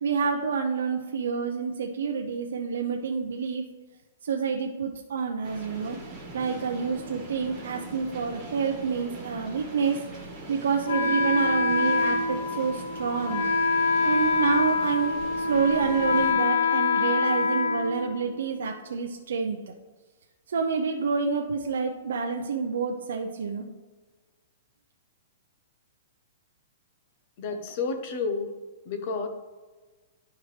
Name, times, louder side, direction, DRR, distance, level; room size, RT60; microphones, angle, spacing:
voice 1, 0.0-3.6 4.3-6.0 6.3-10.0 10.5-13.5 14.0-19.6 20.5-23.6, right 5 dB, 85° right, 2 dB, 0.6 m, -28 dB
sound 1, 5.4-16.3, right 2 dB, 10° right, 1.8 m, -42 dB
Wind instrument woodwind instrument, 10.9-18.6, left 4 dB, 90° left, 0.6 m, -25 dB
voice 2, 27.4-28.5 28.9-29.3, left 4 dB, 35° left, 6 dB, 0.8 m, -30 dB
11.0 x 4.6 x 3.3 m, 1.3 s
hypercardioid pair, 170°, 0 cm